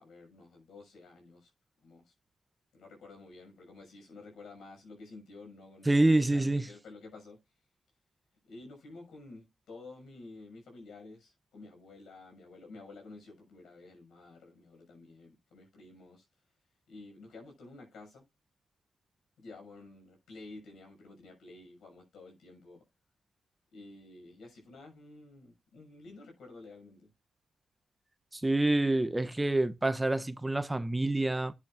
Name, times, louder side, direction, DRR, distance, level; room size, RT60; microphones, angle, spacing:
voice 1, 0.0-1.5 1.8-2.1 2.7-7.4 8.5-16.2 16.9-18.2 19.4-22.8 23.7-27.1, left 3 dB, 75° left, 6.2 m, -51 dB
voice 2, 5.9-6.6 28.4-31.5, right 2 dB, 15° right, 0.8 m, -27 dB
10.0 x 8.4 x 2.6 m
supercardioid pair, 50°, 0 cm